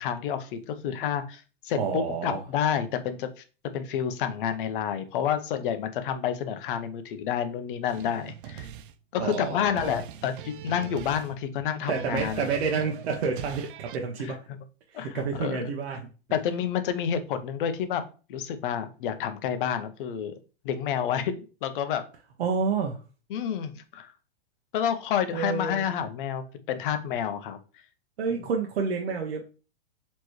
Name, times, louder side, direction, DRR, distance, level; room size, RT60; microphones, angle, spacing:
voice 1, 0.0-3.4 3.7-8.7 9.1-12.5 14.2-14.3 14.9-15.7 16.3-18.0 18.3-20.3 20.6-22.0 23.3-24.1 24.7-27.6, left 8 dB, 55° left, 9 dB, 0.7 m, -29 dB
voice 2, 1.8-2.4 9.2-10.0 11.9-14.5 14.9-16.0 22.4-23.0 25.3-25.9 28.2-29.5, right 5 dB, 75° right, 1 dB, 0.9 m, -29 dB
sound 1, 7.9-14.0, right 10 dB, 55° right, 0.4 m, -42 dB
4.4 x 3.0 x 3.1 m, 0.34 s
hypercardioid pair, 145°, 32 cm